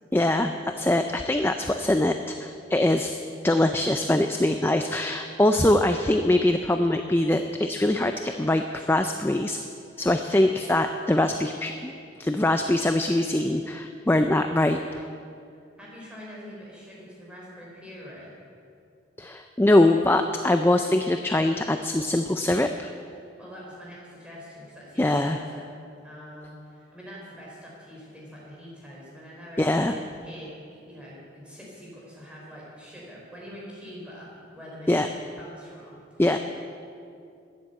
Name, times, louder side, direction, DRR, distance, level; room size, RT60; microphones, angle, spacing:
voice 1, 0.1-3.2 3.4-9.6 10.0-11.9 12.2-15.0 19.2-22.9 25.0-25.4 29.6-29.9 34.9-35.1 36.2-36.4, left 1 dB, 10° left, 6 dB, 0.4 m, -23 dB
voice 2, 15.5-18.3 23.1-25.7 26.0-29.9 30.2-36.4, equal, 5° right, -5 dB, 4.2 m, -44 dB
13.0 x 10.5 x 8.1 m, 2.4 s
head